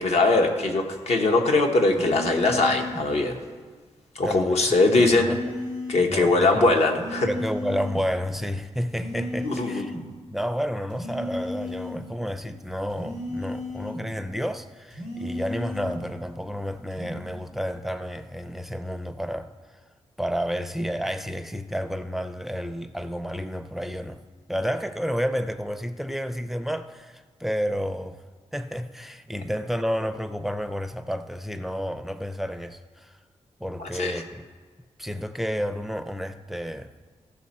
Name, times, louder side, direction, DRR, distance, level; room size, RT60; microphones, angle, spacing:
voice 1, 0.0-3.4 4.1-5.4 5.9-7.3 9.4-9.8 33.8-34.2, left 2 dB, 70° left, 1.1 m, -21 dB
sound 1, 1.9-3.1 4.9-6.1 6.9-8.1 8.9-10.1 10.9-12.1 12.9-14.1 14.9-16.1 16.9-17.2, left 1 dB, 85° left, 2.5 m, -34 dB
voice 2, 4.2-4.6 4.9-5.4 6.1-6.7 7.2-9.9 10.3-19.5 20.2-24.2 24.5-28.2 28.5-33.1 33.6-34.4 35.0-36.9, equal, ahead, 0.4 m, -30 dB
15.0 x 6.0 x 4.2 m
wide cardioid pair, 100°, 12 cm